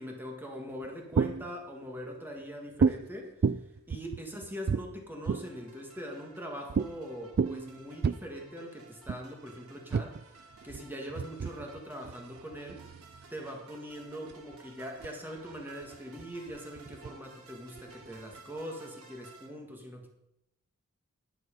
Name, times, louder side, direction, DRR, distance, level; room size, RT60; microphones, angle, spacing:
voice 1, 0.0-3.3 3.9-10.2 10.6-12.8 13.3-20.1, equal, 10° right, 1 dB, 1.8 m, -42 dB
sound 1, 0.7-1.6 2.8-3.0 3.4-5.6 6.7-6.9 7.2-8.2 9.1-9.2 9.9-13.3 14.0-14.6 15.0-15.1 15.4-17.2 17.8-18.6, right 5 dB, 45° right, 0.3 m, -31 dB
sound 2, 5.2-19.5, right 3 dB, 70° right, 2.2 m, -55 dB
12.0 x 8.0 x 5.3 m, 0.83 s
head